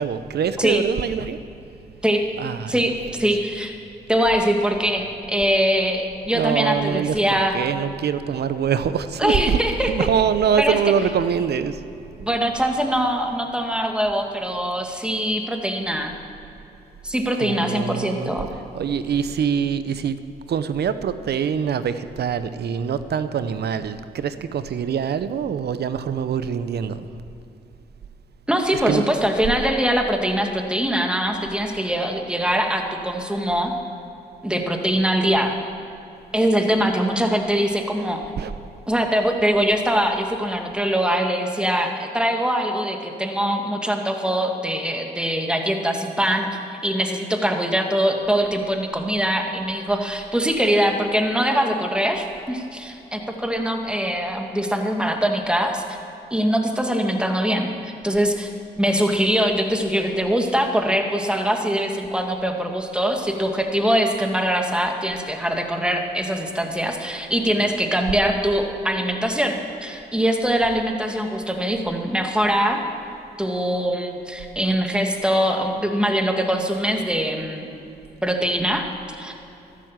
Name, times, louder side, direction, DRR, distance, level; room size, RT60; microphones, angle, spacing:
voice 1, 0.0-1.4 2.4-2.8 6.3-11.8 17.4-18.3 18.7-20.2 20.5-27.1 28.9-29.1 38.4-38.5 67.5-67.7, right 7 dB, 65° right, 12 dB, 0.8 m, -24 dB
voice 2, 3.2-3.7 4.1-7.6 9.2-10.1 10.6-10.8 12.2-16.2 17.0-18.5 28.5-33.7 34.4-35.5 36.3-38.2 38.9-46.5 46.8-55.8 56.3-58.5 58.8-72.8 73.4-77.7 78.2-78.9 79.2-79.3, equal, 5° right, 3 dB, 2.1 m, -22 dB
14.0 x 11.5 x 7.4 m, 2.8 s
supercardioid pair, 50°, 18 cm